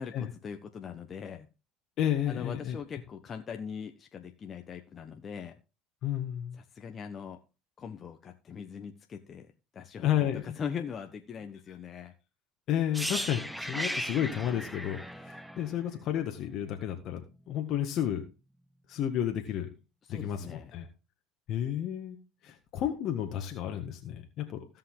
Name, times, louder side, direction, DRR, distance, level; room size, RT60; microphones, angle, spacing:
voice 1, 0.0-1.5 2.3-5.6 6.6-7.4 7.8-12.1 20.0-20.7, left 7 dB, 40° left, 5 dB, 1.1 m, -41 dB
voice 2, 2.0-2.8 6.0-6.6 10.0-10.4 12.7-18.2 18.9-19.7 20.1-20.9 21.5-22.2 22.4-24.7, left 10 dB, 60° left, 4 dB, 1.7 m, -31 dB
sound 1, 12.9-16.8 17.1-17.3, equal, ahead, 0.9 m, -37 dB
16.0 x 5.5 x 3.8 m, 0.29 s
supercardioid pair, 85°, 0 cm